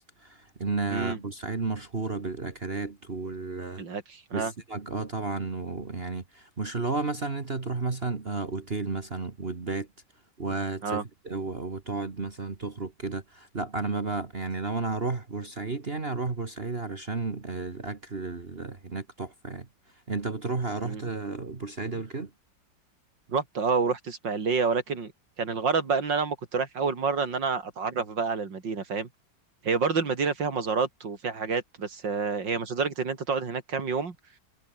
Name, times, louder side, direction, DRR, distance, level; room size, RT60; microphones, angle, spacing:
voice 1, 0.0-3.8 4.3-9.9 10.4-19.7 20.1-22.3, right 3 dB, 35° right, 2.0 m, -32 dB
voice 2, 3.8-4.5 10.8-11.0 20.8-21.0 23.3-25.1 25.4-29.1 29.6-34.2, right 5 dB, 90° right, 3.6 m, -28 dB
omnidirectional pair, 1.9 m